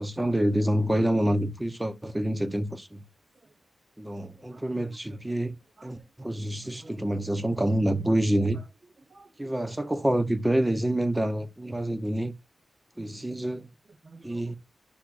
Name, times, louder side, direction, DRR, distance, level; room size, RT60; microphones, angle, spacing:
voice 1, 0.0-3.0 4.0-5.5 5.8-8.6 9.4-12.3 13.0-13.7 14.2-14.6, right 1 dB, 10° right, 0.9 m, -27 dB
voice 2, 4.2-5.4 5.8-6.3 6.6-7.5 8.5-8.6 9.0-9.6 13.0-13.2 13.8-14.6, right 3 dB, 40° right, 1.2 m, -54 dB
10.0 x 6.3 x 2.6 m
cardioid pair, 70°, 0 cm